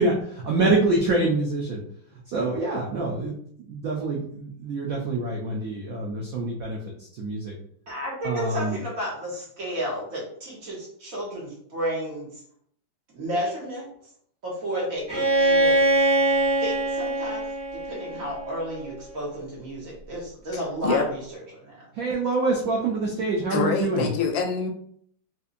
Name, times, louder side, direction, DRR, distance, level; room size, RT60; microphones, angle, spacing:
voice 1, 0.0-1.8 2.3-3.4 3.7-6.8 7.2-7.5 8.2-8.8 22.0-24.1, right 2 dB, 70° right, -2 dB, 0.8 m, -25 dB
voice 2, 7.9-12.3 13.1-13.9 14.4-15.8 16.6-17.4 17.8-21.7, right 1 dB, 50° right, -4 dB, 1.4 m, -32 dB
Bowed string instrument, 15.1-18.9, right 1 dB, 20° right, 0.7 m, -23 dB
voice 3, 20.5-21.1 23.5-24.7, left 4 dB, 80° left, 4 dB, 1.4 m, -25 dB
4.0 x 2.6 x 2.5 m, 0.64 s
omnidirectional pair, 2.1 m